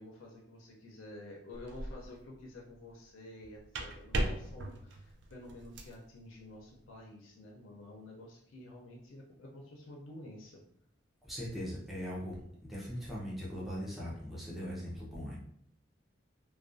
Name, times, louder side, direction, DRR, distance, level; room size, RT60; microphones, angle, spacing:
voice 1, 0.0-10.6, left 1 dB, 90° left, -1 dB, 0.5 m, -50 dB
sound 1, 1.5-2.1 3.4-6.0, right 1 dB, 65° right, 0.3 m, -37 dB
voice 2, 11.2-15.4, equal, ahead, -6 dB, 0.4 m, -40 dB
2.3 x 2.2 x 2.5 m, 0.70 s
head